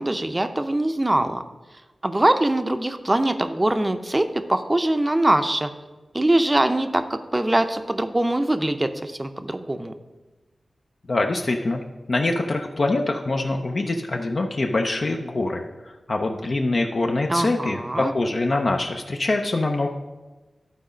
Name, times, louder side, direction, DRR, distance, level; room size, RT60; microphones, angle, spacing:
voice 1, 0.0-1.4 2.0-5.7 6.1-9.9 17.3-18.1, right 1 dB, 25° right, 9 dB, 0.5 m, -22 dB
voice 2, 11.1-11.8 12.1-19.9, left 2 dB, 55° left, 3 dB, 0.6 m, -24 dB
11.5 x 4.0 x 5.0 m, 1.2 s
wide cardioid pair, 65°, 0 cm